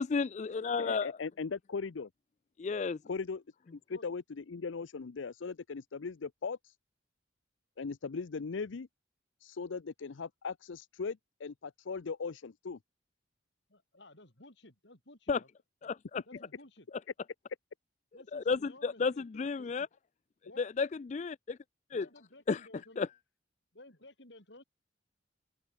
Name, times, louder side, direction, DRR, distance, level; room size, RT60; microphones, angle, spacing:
voice 1, 0.0-1.1 2.6-3.0 15.3-15.4 15.8-16.2 18.3-19.9 20.6-21.6 21.9-22.1 22.5-22.7 23.0-23.1, left 5 dB, 35° left, 0.3 m, -32 dB
voice 2, 0.8-2.1 3.1-3.4 3.7-6.7 7.8-8.9 9.4-12.8, left 5 dB, 80° left, 0.6 m, -39 dB
voice 3, 13.7-15.5 16.3-16.9 18.1-19.7 20.4-20.7 21.9-23.0 23.7-24.6, left 1 dB, 65° left, 5.3 m, -55 dB
open air
head